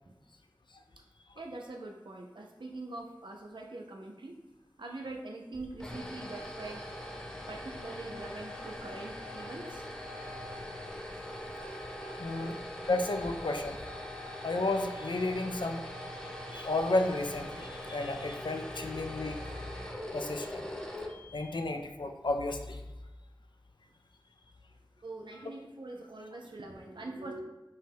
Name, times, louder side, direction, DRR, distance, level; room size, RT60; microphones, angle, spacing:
voice 1, 1.4-4.4 4.8-6.9 7.5-9.8 12.3-12.6 25.0-27.4, right 2 dB, 85° right, 1 dB, 0.5 m, -43 dB
sound 1, 5.5-21.7, left 1 dB, 10° left, 0.6 m, -42 dB
voice 2, 12.2-12.6 12.8-13.8 14.4-15.8 16.5-19.4 20.1-20.7 21.3-22.8, left 2 dB, 75° left, 5 dB, 0.4 m, -32 dB
5.4 x 2.2 x 3.4 m, 1.1 s
wide cardioid pair, 40°, 8 cm